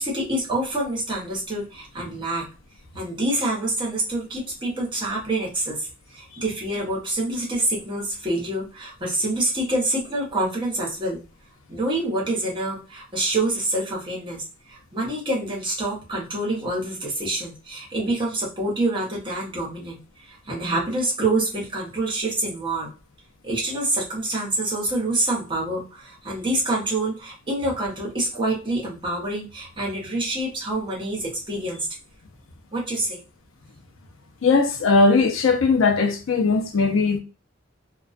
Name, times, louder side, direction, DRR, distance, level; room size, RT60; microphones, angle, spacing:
voice 1, 0.0-2.4 2.9-5.9 6.1-11.2 11.7-14.4 14.7-20.0 20.2-22.9 23.4-31.9 32.7-33.2, right 2 dB, 25° right, 0.9 m, -26 dB
voice 2, 34.4-37.2, left 4 dB, 80° left, 0.5 m, -19 dB
2.3 x 2.2 x 2.4 m
head